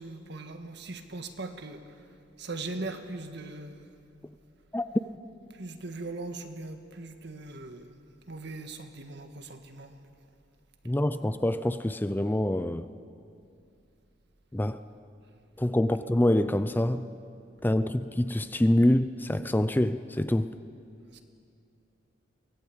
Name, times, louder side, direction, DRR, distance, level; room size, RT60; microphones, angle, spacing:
voice 1, 0.0-1.8 2.4-3.9 5.6-7.9 8.3-10.0 21.1-21.2, right 2 dB, 60° right, 1.7 m, -39 dB
voice 2, 10.8-12.9 14.5-14.8 15.6-17.1 17.6-20.5, left 1 dB, 10° left, 0.5 m, -26 dB
23.0 x 18.0 x 8.6 m
head